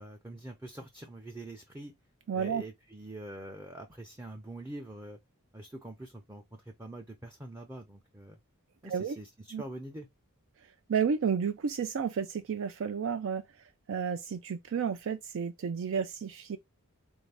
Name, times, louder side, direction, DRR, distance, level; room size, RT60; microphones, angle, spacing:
voice 1, 0.0-1.9 2.3-5.2 5.5-8.4 8.8-10.1, right 1 dB, 10° right, 0.5 m, -44 dB
voice 2, 2.3-2.6 8.9-9.2 9.5-9.6 10.9-13.4 13.9-16.6, right 6 dB, 60° right, 0.4 m, -31 dB
3.9 x 2.7 x 3.3 m
head